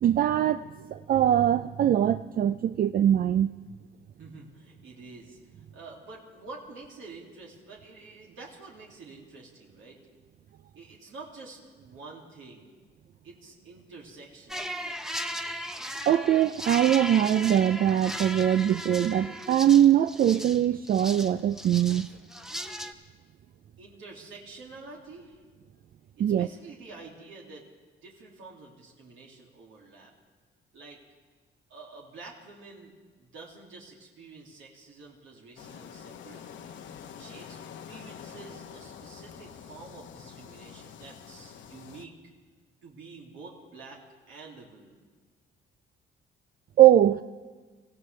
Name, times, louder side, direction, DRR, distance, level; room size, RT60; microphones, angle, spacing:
voice 1, 0.0-3.5 16.1-22.1 26.2-26.5 46.8-47.2, right 11 dB, 45° right, 0.4 m, -22 dB
voice 2, 4.1-5.4 5.7-10.0 10.8-12.7 13.2-14.8 23.8-25.4 26.2-27.7 28.0-30.1 30.7-31.0 31.7-32.9 33.2-37.6 37.9-42.1 42.8-45.0, right 3 dB, 75° right, 2.4 m, -48 dB
sound 1, 14.5-22.9, equal, ahead, 0.8 m, -36 dB
sound 2, 35.6-42.1, left 8 dB, 70° left, 1.0 m, -46 dB
25.5 x 15.5 x 3.3 m
cardioid pair, 90°, 20 cm